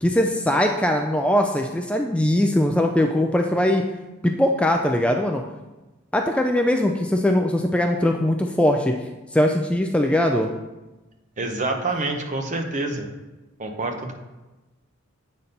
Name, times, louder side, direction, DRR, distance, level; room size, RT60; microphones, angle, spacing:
voice 1, 0.0-3.8 4.2-5.4 6.1-8.9 9.3-10.5, left 1 dB, 5° left, 3 dB, 0.3 m, -21 dB
voice 2, 11.4-13.1 13.6-14.1, right 2 dB, 35° right, 4 dB, 0.8 m, -27 dB
8.2 x 4.2 x 5.2 m, 1.1 s
head